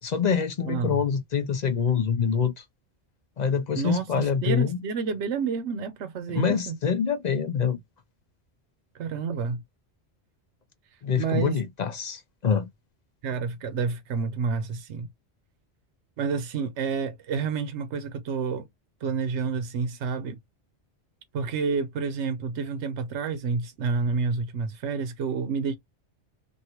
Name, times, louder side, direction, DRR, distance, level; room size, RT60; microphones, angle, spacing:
voice 1, 0.0-2.6 3.4-4.8 6.3-7.8 11.0-12.7, left 7 dB, 50° left, 0.5 m, -25 dB
voice 2, 0.7-1.0 3.7-6.8 8.9-9.6 11.2-11.6 13.2-15.1 16.2-18.7 19.0-20.4 21.3-25.8, right 5 dB, 85° right, 1.0 m, -29 dB
3.1 x 2.6 x 2.8 m
omnidirectional pair, 1.1 m